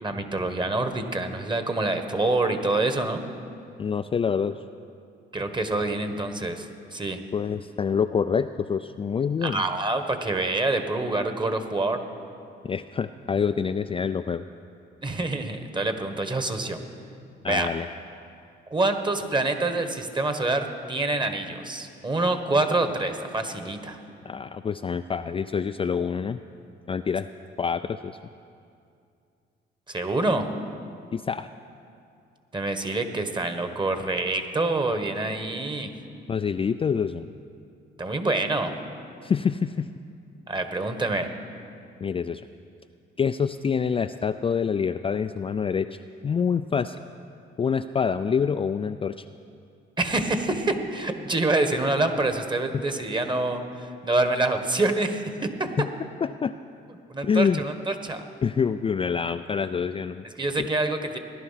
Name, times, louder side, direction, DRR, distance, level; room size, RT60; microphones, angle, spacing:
voice 1, 0.0-3.2 5.3-7.2 9.4-12.0 15.0-16.8 17.4-17.7 18.7-24.0 29.9-30.5 32.5-35.9 38.0-38.7 40.5-41.3 50.0-55.7 57.1-58.3 60.4-61.2, right 2 dB, 25° right, 7 dB, 1.3 m, -26 dB
voice 2, 3.8-4.6 7.3-9.6 12.6-14.4 17.4-17.9 24.2-26.4 26.9-27.3 27.6-28.1 31.1-31.5 36.3-37.3 39.2-39.9 42.0-42.4 43.2-46.0 46.2-47.0 47.6-49.2 52.7-52.8 55.8-55.9 56.2-56.5 57.2-57.6 58.4-60.2 60.6-60.7, left 6 dB, 25° left, 8 dB, 0.3 m, -26 dB
16.5 x 11.0 x 5.8 m, 2.4 s
cardioid pair, 90°, 20 cm